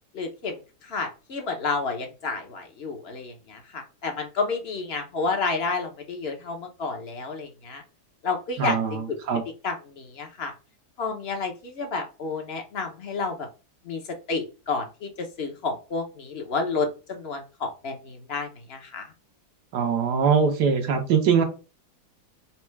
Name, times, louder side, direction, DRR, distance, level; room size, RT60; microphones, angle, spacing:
voice 1, 0.1-7.8 8.2-9.2 9.6-10.5 11.0-13.5 13.8-14.0 14.3-19.1, left 4 dB, 45° left, 4 dB, 0.9 m, -30 dB
voice 2, 8.6-9.4 19.7-21.4, right 6 dB, 85° right, 4 dB, 1.5 m, -22 dB
4.3 x 2.3 x 4.6 m, 0.32 s
omnidirectional pair, 1.7 m